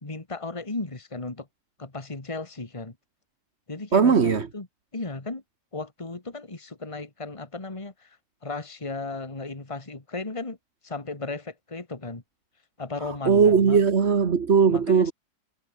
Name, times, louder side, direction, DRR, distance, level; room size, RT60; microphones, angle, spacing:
voice 1, 0.0-1.5 1.8-3.0 3.7-4.7 4.9-5.4 5.7-8.2 8.4-10.6 10.8-12.2 12.8-13.8 14.7-15.1, left 3 dB, 20° left, 2.3 m, -35 dB
voice 2, 3.9-4.5 13.3-15.1, right 6 dB, 50° right, 1.6 m, -19 dB
omnidirectional pair, 1.4 m